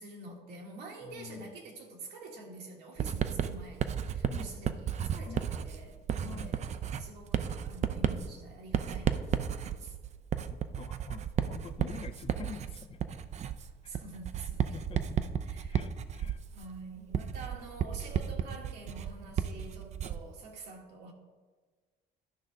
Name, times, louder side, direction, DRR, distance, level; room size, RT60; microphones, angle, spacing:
voice 1, 0.0-6.6 7.0-9.9 13.9-14.8 15.4-15.8 16.5-21.1, right 3 dB, 80° right, 0 dB, 1.7 m, -47 dB
voice 2, 1.0-1.6 4.3-4.5 5.3-5.4 6.2-6.6 10.5-13.1 13.8-13.9 14.7-15.3 15.7-16.4, left 7 dB, 35° left, 11 dB, 0.4 m, -46 dB
Writing, 3.0-20.3, right 8 dB, 40° right, 0.4 m, -33 dB
12.0 x 5.2 x 3.8 m, 1.4 s
cardioid pair, 110°, 17 cm